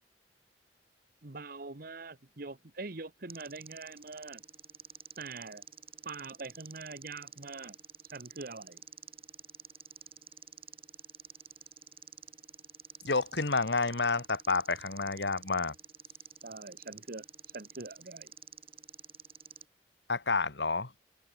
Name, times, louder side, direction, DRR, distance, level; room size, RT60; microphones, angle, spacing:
voice 1, 1.2-4.4 5.2-5.6 6.0-7.7 8.1-8.8 16.4-17.2 17.5-18.3, right 3 dB, 55° right, 1.4 m, -43 dB
sound 1, 3.3-19.7, right 8 dB, 35° right, 4.9 m, -51 dB
voice 2, 13.0-15.7 20.1-20.9, left 3 dB, 75° left, 2.0 m, -29 dB
head